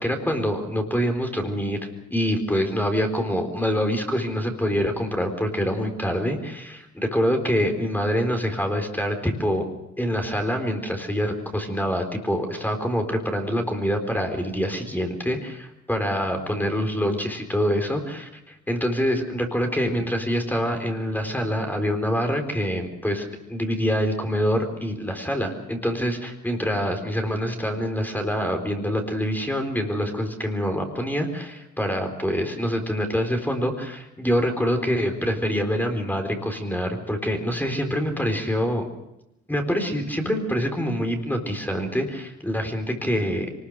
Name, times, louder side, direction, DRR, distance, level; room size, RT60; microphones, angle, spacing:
voice 1, 0.0-1.8 2.1-9.7 10.0-38.9 39.5-43.5, equal, 5° left, 4 dB, 4.1 m, -25 dB
24.0 x 20.0 x 6.5 m, 0.88 s
cardioid pair, 90°, 30 cm